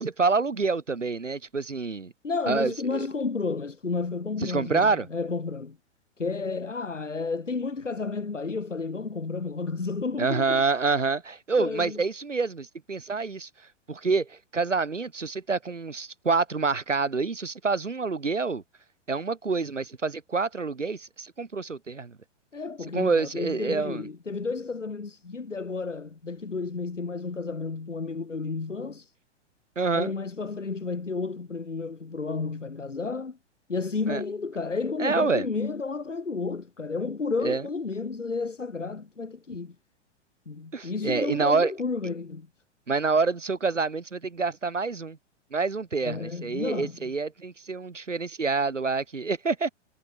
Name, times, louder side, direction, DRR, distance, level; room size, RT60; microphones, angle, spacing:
voice 1, 0.0-2.1 2.5-3.1 4.4-5.1 10.2-13.5 13.9-18.6 19.1-22.2 22.9-24.1 29.8-30.1 34.1-34.2 35.0-35.4 37.4-37.6 40.7-41.7 42.9-45.2 45.5-49.7, right 4 dB, 85° right, 5.4 m, -27 dB
voice 2, 2.2-5.8 6.2-10.8 11.6-12.0 22.5-29.1 29.9-33.4 33.7-39.8 40.5-42.5 46.0-47.1, left 4 dB, 90° left, 3.2 m, -31 dB
figure-of-eight pair, 105°, 36 cm